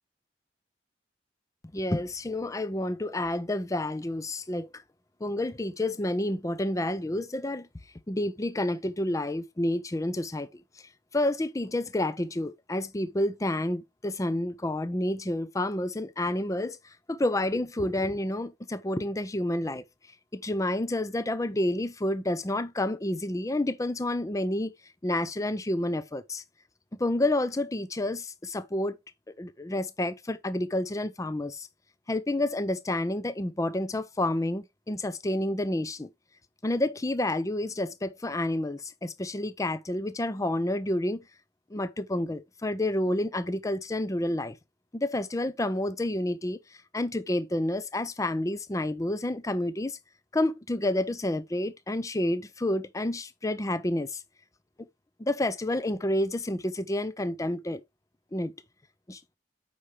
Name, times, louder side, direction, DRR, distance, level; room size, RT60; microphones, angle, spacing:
voice 1, 1.7-4.8 5.2-7.7 8.1-10.5 11.1-16.8 17.1-19.8 20.3-24.7 25.0-26.4 27.0-29.0 29.4-31.7 32.1-36.1 36.6-41.2 41.7-44.5 44.9-46.6 46.9-49.9 50.3-54.2 55.2-57.8 58.3-58.5 59.1-59.2, left 1 dB, 20° left, 0.5 m, -29 dB
8.5 x 5.6 x 3.3 m
head